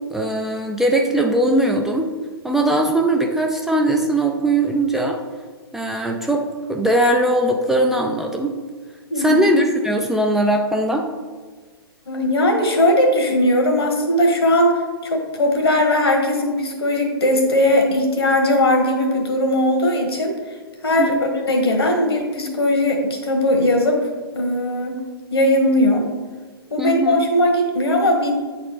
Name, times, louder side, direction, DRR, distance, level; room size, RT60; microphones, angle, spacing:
voice 1, 0.1-2.1 2.4-5.2 5.7-8.6 9.2-11.0 21.0-21.2 26.8-27.2, right 1 dB, 5° right, 1 dB, 0.4 m, -20 dB
voice 2, 9.1-9.4 12.1-20.3 20.8-24.0 24.3-25.0 25.3-26.0 26.7-28.3, left 1 dB, 75° left, 2 dB, 1.5 m, -19 dB
8.7 x 4.2 x 3.2 m, 1.4 s
figure-of-eight pair, 115°, 13 cm